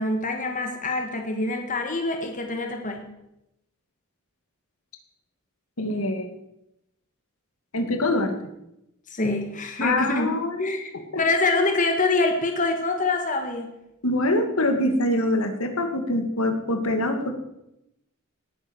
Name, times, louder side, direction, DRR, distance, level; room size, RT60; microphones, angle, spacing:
voice 1, 0.0-3.1 9.1-10.3 10.6-13.7, left 3 dB, 35° left, 5 dB, 1.7 m, -25 dB
voice 2, 5.8-6.3 7.7-8.3 9.8-10.6 11.1-11.2 14.0-17.4, left 1 dB, 70° left, 6 dB, 2.1 m, -24 dB
18.0 x 9.8 x 6.3 m, 0.85 s
head